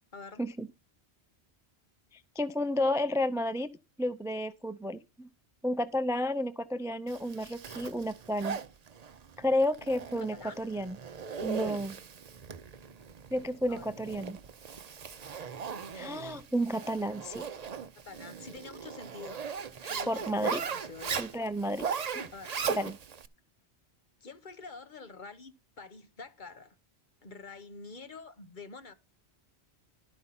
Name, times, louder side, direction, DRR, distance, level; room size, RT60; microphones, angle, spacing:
voice 1, 0.1-0.4 10.1-10.6 13.7-14.0 18.0-19.5 19.9-21.2 22.3-22.6 24.2-26.8 27.2-28.9, left 4 dB, 45° left, 1.2 m, -47 dB
voice 2, 2.1-3.7 4.0-5.3 5.6-8.6 9.4-11.0 11.4-12.0 13.3-14.4 15.9-17.5 20.1-20.6 21.2-21.9 22.1-22.3 22.7-23.0, left 1 dB, 5° right, 0.3 m, -31 dB
Zipper (clothing), 7.1-23.3, right 6 dB, 45° right, 0.7 m, -38 dB
12.0 x 5.4 x 5.9 m
omnidirectional pair, 1.1 m